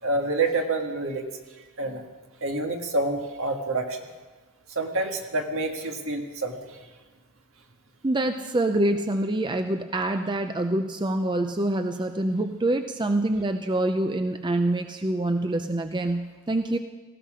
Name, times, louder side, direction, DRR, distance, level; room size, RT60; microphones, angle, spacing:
voice 1, 0.0-1.3 1.8-2.0 2.4-4.0 4.7-6.8, right 2 dB, 60° right, 3 dB, 1.8 m, -27 dB
voice 2, 8.0-16.8, right 1 dB, 20° right, 7 dB, 0.5 m, -26 dB
18.5 x 16.0 x 5.0 m, 1.3 s
head